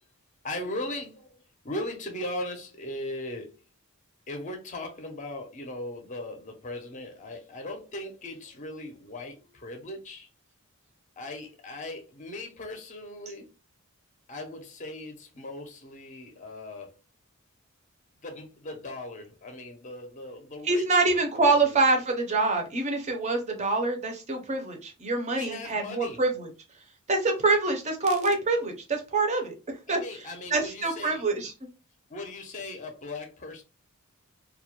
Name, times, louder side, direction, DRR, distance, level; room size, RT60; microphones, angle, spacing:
voice 1, 0.4-1.4 1.6-3.6 4.3-10.3 11.2-13.5 14.3-16.9 18.2-21.8 25.3-26.2 29.9-31.2 32.1-33.6, left 1 dB, 35° left, 0.5 m, -38 dB
voice 2, 20.6-26.5 27.1-29.5 29.9-30.0 30.5-31.5, right 3 dB, 30° right, 0.5 m, -25 dB
2.2 x 2.1 x 2.9 m
head